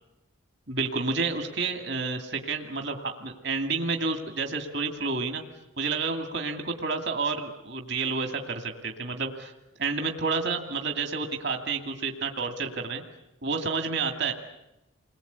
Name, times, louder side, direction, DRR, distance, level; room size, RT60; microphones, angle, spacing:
voice 1, 0.7-5.4 5.8-9.5 9.8-13.0 13.4-14.3, right 4 dB, 55° right, 4 dB, 2.4 m, -30 dB
29.5 x 21.5 x 8.2 m, 0.95 s
head